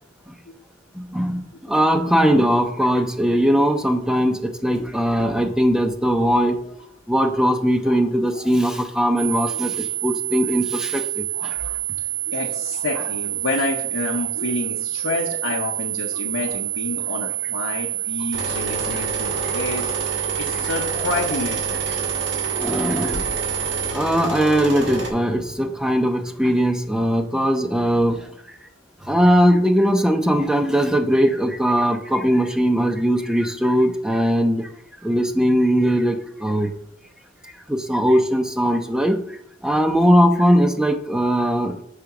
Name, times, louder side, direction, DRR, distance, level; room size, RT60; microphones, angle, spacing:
voice 1, 1.0-6.6 7.1-11.5 22.5-23.3 23.9-28.2 29.1-34.7 35.0-36.7 37.7-39.2 39.6-41.8, equal, 5° right, 5 dB, 0.5 m, -20 dB
voice 2, 5.2-5.7 7.9-8.5 9.5-9.7 10.3-10.5 11.3-11.7 12.0-19.9 20.3-22.0, left 3 dB, 75° left, 0 dB, 0.7 m, -29 dB
sound 1, 9.2-23.9, right 12 dB, 75° right, 0.9 m, -27 dB
sound 2, 18.3-25.1, right 2 dB, 60° right, 1.6 m, -29 dB
5.1 x 3.7 x 5.8 m, 0.68 s
head